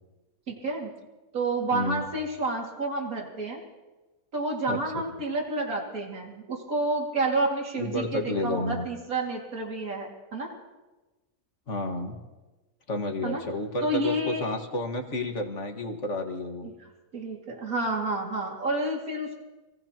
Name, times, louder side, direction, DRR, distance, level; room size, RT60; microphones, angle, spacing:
voice 1, 0.5-0.9 1.3-3.6 4.3-10.5 13.2-13.4 13.8-14.4 17.1-19.4, right 2 dB, 75° right, 0 dB, 2.8 m, -29 dB
voice 2, 1.7-2.0 4.7-5.0 7.8-8.9 11.7-12.2 12.9-16.7, left 1 dB, 55° left, 3 dB, 2.1 m, -31 dB
27.0 x 18.0 x 2.9 m, 1.2 s
omnidirectional pair, 1.5 m